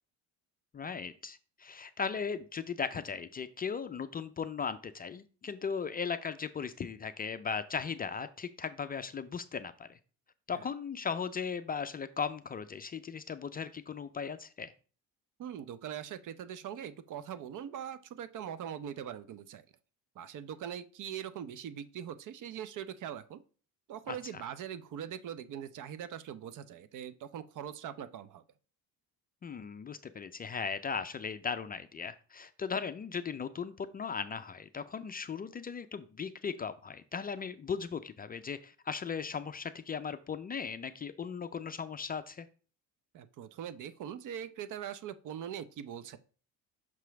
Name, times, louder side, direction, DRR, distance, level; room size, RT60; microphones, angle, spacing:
voice 1, 0.7-10.0 10.5-14.7 24.1-24.4 29.4-42.5, left 6 dB, 25° left, 10 dB, 0.4 m, -37 dB
voice 2, 15.4-19.6 20.2-23.4 23.9-28.4 43.1-46.2, right 9 dB, 55° right, 14 dB, 0.6 m, -42 dB
6.0 x 3.0 x 5.7 m, 0.38 s
supercardioid pair, 90°, 38 cm